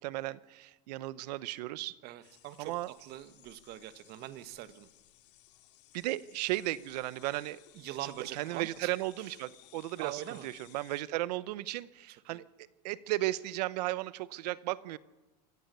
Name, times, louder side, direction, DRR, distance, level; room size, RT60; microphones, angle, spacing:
voice 1, 0.0-2.0 2.6-2.9 5.9-7.6 8.3-12.4 12.8-15.0, right 17 dB, 70° right, 18 dB, 0.9 m, -35 dB
voice 2, 2.0-4.9 7.8-8.9 9.2-9.3 10.0-10.5 12.3-12.4, right 13 dB, 50° right, 12 dB, 1.4 m, -43 dB
sound 1, 2.2-11.0, left 14 dB, 70° left, 2.3 m, -60 dB
25.5 x 15.5 x 6.8 m, 1.1 s
supercardioid pair, 110°, 21 cm